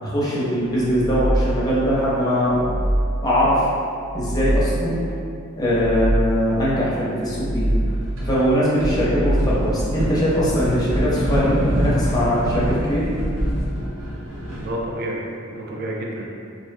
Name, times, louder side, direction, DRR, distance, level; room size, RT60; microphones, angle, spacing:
voice 1, 0.0-2.7 3.2-3.7 4.1-5.0 5.6-7.7 8.2-13.1, equal, 20° left, -8 dB, 0.6 m, -21 dB
sound 1, 0.8-1.9 2.3-3.5 3.9-5.0 5.5-6.6 7.1-8.2 8.8-9.9, right 1 dB, 20° right, 0.9 m, -24 dB
sound 2, 7.8-8.5 8.8-14.8, equal, 75° right, 0.7 m, -25 dB
voice 2, 14.5-16.3, right 1 dB, 50° right, -2 dB, 0.3 m, -29 dB
2.6 x 2.0 x 2.5 m, 2.5 s
head